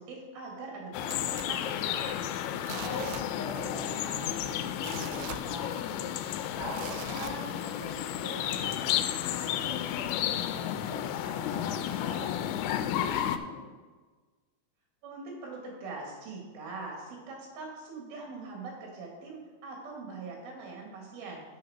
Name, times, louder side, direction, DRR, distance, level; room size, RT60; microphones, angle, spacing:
voice 1, 0.0-2.2 15.0-21.4, right 3 dB, 60° right, -1 dB, 3.7 m, -42 dB
sound 1, 0.9-13.4, left 11 dB, 85° left, 2.7 m, -32 dB
sound 2, 1.1-2.2 2.6-3.8 4.0-4.1 4.6-6.1 6.7-7.9 8.4-8.5, right 10 dB, 85° right, 2.5 m, -43 dB
voice 2, 2.8-6.1 6.4-13.7, left 2 dB, 55° left, -5 dB, 3.0 m, -42 dB
6.6 x 6.4 x 6.1 m, 1.3 s
omnidirectional pair, 5.2 m